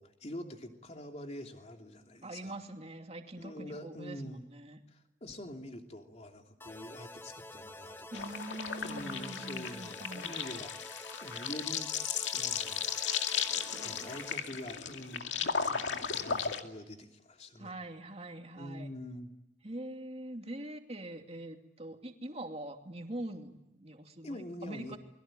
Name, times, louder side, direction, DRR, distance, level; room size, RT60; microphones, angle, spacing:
voice 1, 0.0-2.5 3.4-4.5 4.9-8.3 8.8-12.8 13.8-17.7 18.6-19.4 24.2-25.0, left 1 dB, 35° left, 3 dB, 3.0 m, -45 dB
voice 2, 2.2-4.8 8.1-10.3 13.5-14.6 17.6-18.9 19.6-25.0, right 1 dB, 35° right, 4 dB, 2.7 m, -44 dB
sound 1, 6.6-14.4, left 1 dB, 15° left, 1.1 m, -48 dB
sound 2, 8.1-16.6, left 7 dB, 90° left, 2.3 m, -35 dB
28.5 x 22.5 x 9.1 m, 0.91 s
head